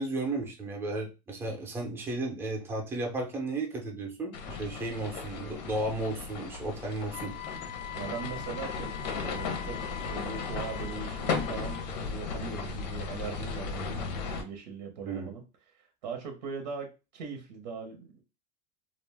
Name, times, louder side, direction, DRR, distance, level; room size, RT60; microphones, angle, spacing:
voice 1, 0.0-7.3 15.0-15.3, right 2 dB, 10° right, 1 dB, 0.6 m, -34 dB
sound 1, 4.3-14.4, left 5 dB, 85° left, 0.8 m, -36 dB
Wind instrument woodwind instrument, 7.1-11.9, left 12 dB, 55° left, 0.5 m, -43 dB
voice 2, 7.9-15.4 16.0-18.2, right 5 dB, 90° right, 4 dB, 0.8 m, -40 dB
2.5 x 2.1 x 3.4 m, 0.29 s
supercardioid pair, 145°, 21 cm